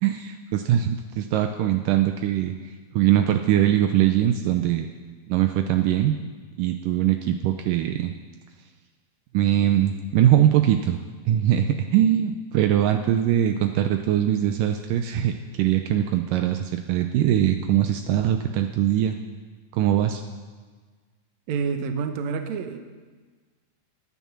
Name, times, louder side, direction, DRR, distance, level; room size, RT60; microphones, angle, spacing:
voice 1, 0.0-2.5 2.9-4.9 5.3-6.2 6.6-8.1 9.3-19.2 19.7-20.2, right 11 dB, 80° right, 6 dB, 2.1 m, -22 dB
voice 2, 21.5-22.8, right 5 dB, 65° right, 6 dB, 2.0 m, -28 dB
22.0 x 9.3 x 6.0 m, 1.4 s
omnidirectional pair, 4.2 m